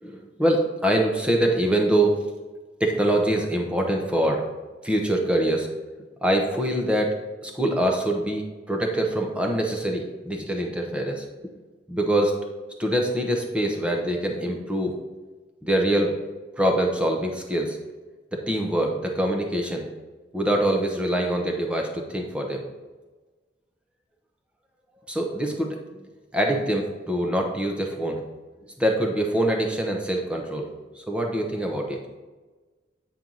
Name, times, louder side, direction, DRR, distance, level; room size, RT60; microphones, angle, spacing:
voice 1, 0.0-2.2 2.8-4.4 4.8-5.7 6.2-7.1 7.4-11.2 11.9-12.4 12.8-14.9 15.6-16.2 16.6-17.8 18.3-19.9 20.3-22.6 25.1-25.8 26.3-28.2 28.8-30.7 30.9-32.0, right 1 dB, 5° right, 1 dB, 0.9 m, -24 dB
8.8 x 4.5 x 3.9 m, 1.3 s
head